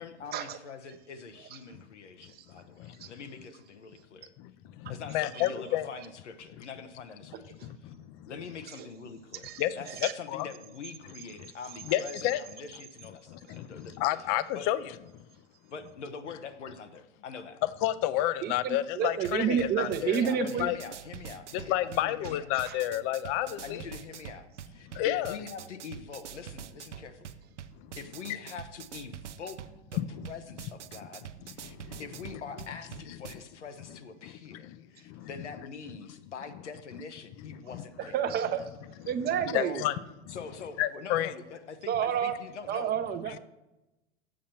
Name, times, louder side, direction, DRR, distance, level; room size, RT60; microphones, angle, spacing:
voice 1, 0.0-4.3 4.9-7.9 8.3-13.9 14.5-14.7 15.7-17.6 19.4-22.5 23.4-27.3 28.0-30.0 30.3-31.2 31.5-38.2 39.5-39.8 40.3-42.9 43.3-43.4, left 5 dB, 85° left, 8 dB, 0.9 m, -44 dB
voice 2, 4.8-5.9 7.6-8.3 9.6-10.5 11.4-11.5 11.9-12.4 13.3-14.8 17.8-20.2 20.6-20.8 21.5-23.8 24.9-25.4 27.8-27.9 30.0-30.2 31.4-32.0 34.2-35.3 37.7-37.8 39.5-39.9 40.3-40.4 40.8-41.3, left 14 dB, 40° left, 16 dB, 0.5 m, -31 dB
voice 3, 9.4-10.1 18.4-20.7 22.6-22.8 38.1-38.6 39.0-39.8 41.9-42.3 42.7-43.3, right 8 dB, 30° right, 9 dB, 0.6 m, -30 dB
sound 1, 19.2-33.3, right 9 dB, 90° right, 0.6 m, -46 dB
7.4 x 7.3 x 4.4 m, 0.97 s
hypercardioid pair, 100°, 35 cm